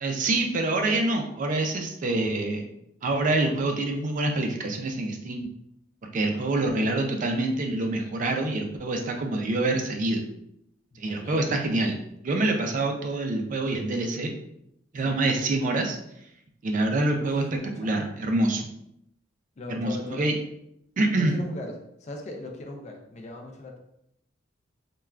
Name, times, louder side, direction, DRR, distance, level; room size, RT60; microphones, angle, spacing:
voice 1, 0.0-2.6 3.0-5.5 6.0-10.2 11.0-12.0 12.2-14.3 14.9-16.0 16.6-18.7 19.7-20.4 21.0-21.3, right 2 dB, 45° right, 3 dB, 0.4 m, -26 dB
voice 2, 11.0-11.6 15.0-15.2 17.2-17.9 19.6-20.3 21.2-23.8, left 2 dB, 40° left, 3 dB, 0.4 m, -40 dB
3.2 x 2.2 x 2.3 m, 0.77 s
head